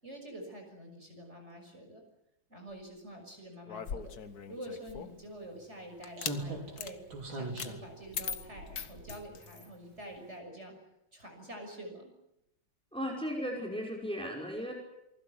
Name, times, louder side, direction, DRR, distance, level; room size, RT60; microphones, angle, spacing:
voice 1, 0.0-2.0 2.5-4.1 4.5-7.0 7.3-10.7 11.1-12.1, right 1 dB, 35° right, 3 dB, 6.8 m, -47 dB
sound 1, 3.7-5.2 6.0-6.4 6.8-6.9 7.6-7.7 8.1-9.7, left 7 dB, 55° left, 1.6 m, -40 dB
Slam, 4.8-4.9 6.2-9.7 10.0-10.1, right 2 dB, 85° right, 5.9 m, -42 dB
voice 2, 12.9-14.7, equal, 5° left, 0 dB, 5.2 m, -36 dB
28.5 x 20.5 x 8.1 m, 0.86 s
omnidirectional pair, 2.1 m